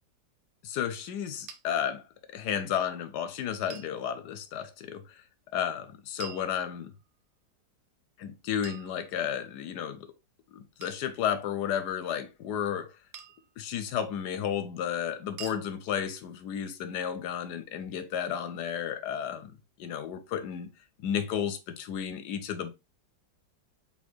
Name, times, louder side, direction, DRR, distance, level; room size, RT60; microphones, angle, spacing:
voice 1, 0.6-2.0 2.3-5.2 5.5-6.9 8.2-10.1 10.5-13.0 13.6-19.5 19.8-20.7 21.0-22.7, left 9 dB, 75° left, 1.1 m, -32 dB
sound 1, 1.5-1.6 3.7-4.0 6.2-7.1 8.6-9.5 10.8-11.1 13.1-13.5 15.4-15.7, right 8 dB, 80° right, 0.6 m, -46 dB
4.1 x 3.5 x 3.1 m
omnidirectional pair, 1.9 m